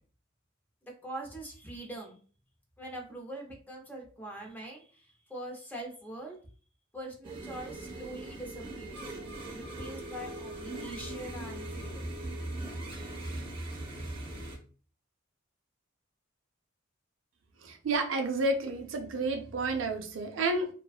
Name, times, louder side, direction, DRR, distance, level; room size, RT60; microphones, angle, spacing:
voice 1, 1.0-2.2 2.8-6.4 6.9-9.0 9.5-12.0, right 1 dB, 10° left, 0 dB, 0.5 m, -43 dB
sound 1, 7.2-14.6, right 2 dB, 25° right, 0.7 m, -40 dB
voice 2, 17.6-20.7, right 2 dB, 70° right, 4 dB, 0.4 m, -30 dB
2.4 x 2.2 x 2.3 m, 0.40 s
head